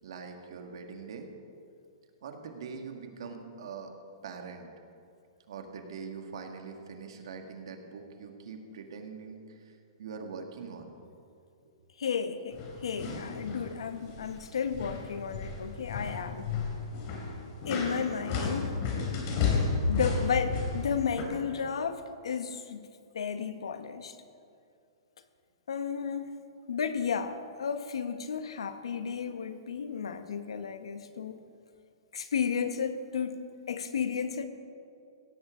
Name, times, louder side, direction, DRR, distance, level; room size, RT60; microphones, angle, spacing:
voice 1, 0.0-1.3 2.2-3.9 4.2-4.7 5.5-9.4 9.7-9.8 10.0-10.9, right 5 dB, 65° right, 4 dB, 1.9 m, -43 dB
voice 2, 12.0-16.5 17.7-18.7 19.9-22.9 23.1-24.1 25.7-26.3 26.7-31.4 32.1-34.4, left 6 dB, 90° left, 9 dB, 1.1 m, -33 dB
sound 1, 12.5-13.7 14.0-14.4 14.7-21.2, left 4 dB, 35° left, 2.7 m, -32 dB
16.5 x 14.0 x 3.8 m, 2.4 s
hypercardioid pair, 160°, 3 cm